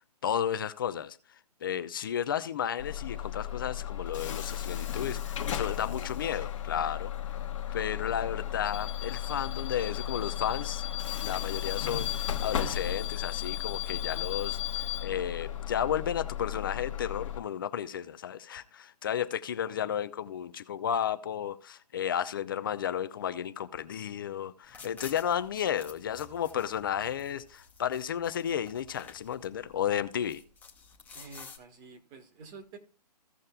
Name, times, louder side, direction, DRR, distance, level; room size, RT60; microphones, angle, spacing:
voice 1, 0.2-1.2 1.6-7.1 7.7-10.8 11.2-30.4, left 9 dB, 30° left, 0.4 m, -33 dB
Bus / Alarm, 2.8-17.4, left 11 dB, 50° left, 1.1 m, -34 dB
sound 1, 24.6-31.6, left 5 dB, 5° left, 0.8 m, -51 dB
voice 2, 31.1-32.8, right 4 dB, 20° right, 1.2 m, -49 dB
16.0 x 6.4 x 2.3 m
figure-of-eight pair, 140°, 21 cm